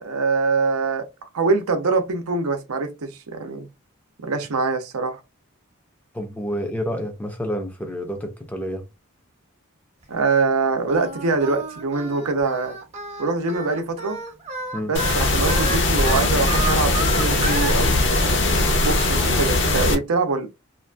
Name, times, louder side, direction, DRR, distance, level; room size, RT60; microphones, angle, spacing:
voice 1, 0.0-1.1 1.3-3.7 4.2-5.2 10.1-12.8 13.2-14.2 14.9-18.4 18.8-20.5, right 3 dB, 80° right, 0.6 m, -24 dB
voice 2, 6.1-8.8 14.7-14.9, equal, 5° left, 0.4 m, -29 dB
Singing, 10.9-17.8, right 3 dB, 30° right, 0.7 m, -31 dB
sound 1, 14.9-19.9, left 2 dB, 55° left, 0.7 m, -20 dB
2.6 x 2.4 x 2.2 m
head